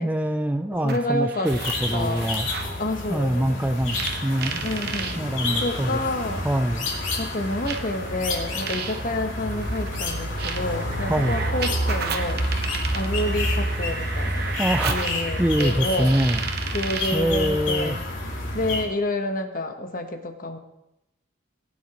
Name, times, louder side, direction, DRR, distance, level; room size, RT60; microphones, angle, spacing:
voice 1, 0.0-2.5 3.1-4.7 5.2-6.0 6.4-6.9 11.1-11.4 14.6-16.4 17.1-18.0, right 1 dB, 10° right, 7 dB, 0.4 m, -24 dB
sound 1, 0.7-2.8 3.9-5.2 6.3-6.4 7.7-17.2, right 5 dB, 55° right, 1.0 m, -34 dB
voice 2, 0.8-1.5 1.9-2.3 2.8-3.6 4.6-5.2 5.6-6.4 7.2-12.4 12.9-14.5 14.9-16.1 16.7-18.0 18.5-20.6, left 1 dB, 45° left, 5 dB, 1.1 m, -29 dB
sound 2, 1.4-18.8, left 1 dB, 85° left, 2.8 m, -29 dB
19.5 x 9.8 x 3.0 m, 0.91 s
head